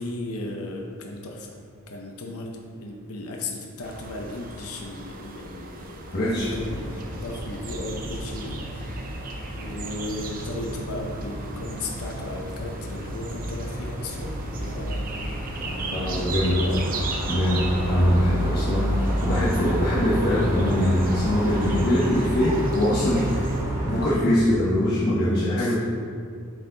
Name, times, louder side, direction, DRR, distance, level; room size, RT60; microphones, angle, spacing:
voice 1, 0.0-1.6 1.9-9.1 9.5-15.3 15.6-16.8 25.6-25.8, left 2 dB, 75° left, 1 dB, 0.7 m, -35 dB
sound 1, 3.8-23.6, right 3 dB, 40° right, 0.6 m, -39 dB
voice 2, 6.1-6.5 15.9-16.6 17.3-18.9 19.2-23.2 23.8-25.8, left 1 dB, 45° left, -8 dB, 1.0 m, -22 dB
sound 2, 6.4-24.1, equal, 15° right, 1.3 m, -30 dB
7.7 x 4.8 x 3.8 m, 2.3 s
head